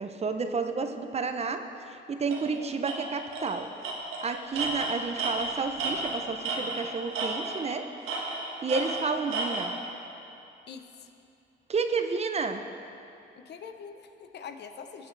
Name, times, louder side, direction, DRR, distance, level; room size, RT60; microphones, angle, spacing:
voice 1, 0.0-3.7 4.2-7.9 8.6-9.7 11.7-12.6, right 4 dB, 30° right, 7 dB, 0.6 m, -31 dB
Tools, 2.3-2.4 2.8-3.0 3.3-3.5 3.8-6.9 7.1-7.7 8.1-9.7, right 3 dB, 90° right, 1.5 m, -32 dB
voice 2, 10.7-11.1 13.4-15.1, left 6 dB, 60° left, 7 dB, 0.7 m, -44 dB
16.0 x 7.9 x 3.3 m, 2.7 s
cardioid pair, 90°, 20 cm